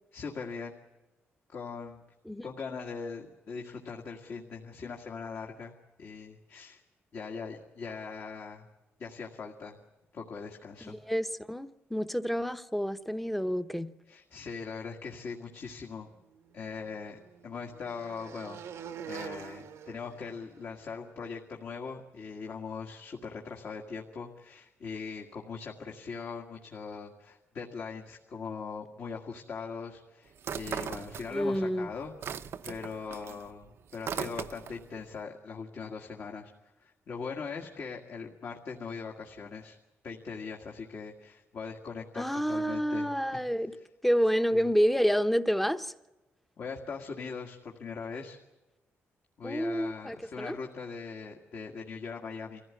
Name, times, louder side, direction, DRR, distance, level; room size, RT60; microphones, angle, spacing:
voice 1, 0.1-0.7 1.5-2.0 2.4-6.8 7.1-8.7 9.0-9.8 10.1-11.0 14.1-16.1 16.5-18.6 19.1-39.8 40.0-43.1 44.5-44.7 46.6-48.4 49.4-52.6, left 5 dB, 55° left, 0 dB, 1.9 m, -41 dB
voice 2, 10.8-13.9 31.3-31.9 42.2-43.8 44.0-45.9 49.4-50.5, equal, 5° left, 10 dB, 0.8 m, -29 dB
sound 1, 16.3-20.9, right 7 dB, 85° right, 1.1 m, -45 dB
sound 2, 30.4-31.6 31.9-34.9, right 8 dB, 60° right, 0.7 m, -38 dB
25.0 x 15.5 x 9.7 m, 1.1 s
cardioid pair, 130°, 5 cm